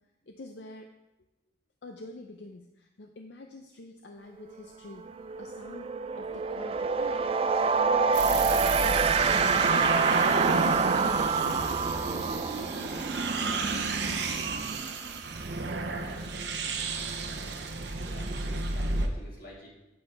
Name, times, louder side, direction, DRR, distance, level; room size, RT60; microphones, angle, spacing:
voice 1, 0.3-0.9 1.8-5.1 5.4-5.9 6.2-13.1 13.6-14.3, left 2 dB, 75° left, 4 dB, 0.6 m, -47 dB
sound 1, 4.5-4.7 5.0-15.5, right 5 dB, 30° right, 0.3 m, -27 dB
sound 2, 8.1-19.1, right 3 dB, 70° right, 0.8 m, -32 dB
voice 2, 16.0-16.8 17.9-19.7, equal, 55° left, -4 dB, 2.5 m, -49 dB
9.3 x 7.8 x 3.4 m, 0.96 s
head